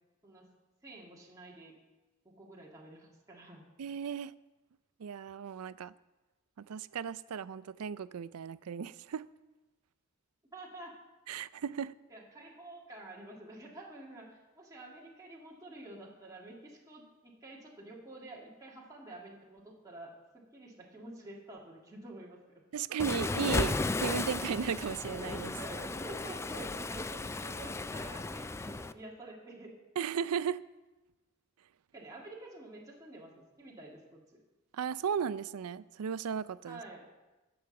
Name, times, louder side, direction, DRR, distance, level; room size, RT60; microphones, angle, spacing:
voice 1, 0.8-1.7 2.2-3.7 10.5-11.0 12.1-22.6 25.6-29.8 31.9-34.4 36.6-37.1, right 2 dB, 15° right, -4 dB, 1.9 m, -49 dB
voice 2, 3.8-4.3 5.0-5.9 6.6-9.3 11.3-11.9 22.7-25.6 30.0-30.6 34.7-36.8, right 7 dB, 80° right, 17 dB, 0.4 m, -35 dB
Waves surf, 23.0-28.9, left 3 dB, 10° left, 0.3 m, -35 dB
12.5 x 7.0 x 7.0 m, 1.1 s
head